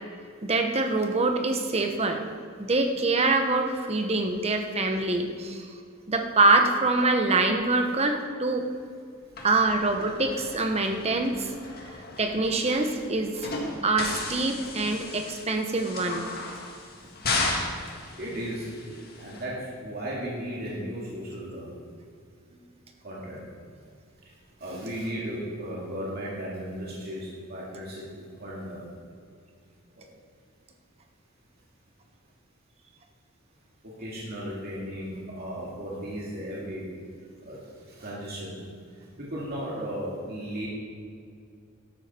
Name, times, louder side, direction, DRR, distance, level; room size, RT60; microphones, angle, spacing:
voice 1, 0.4-2.3 2.6-5.7 6.1-8.6 9.4-11.5 12.2-13.5 13.8-16.3, right 2 dB, 30° right, 5 dB, 1.0 m, -25 dB
sound 1, 9.4-19.4, left 3 dB, 50° left, 1.8 m, -35 dB
voice 2, 18.2-18.7 19.2-21.7 23.0-23.4 24.6-28.1 28.4-28.8 30.0-30.1 33.8-36.8 37.4-37.6 38.0-38.6 39.2-40.7, equal, 50° right, -5 dB, 2.3 m, -35 dB
12.5 x 11.5 x 4.4 m, 2.3 s
head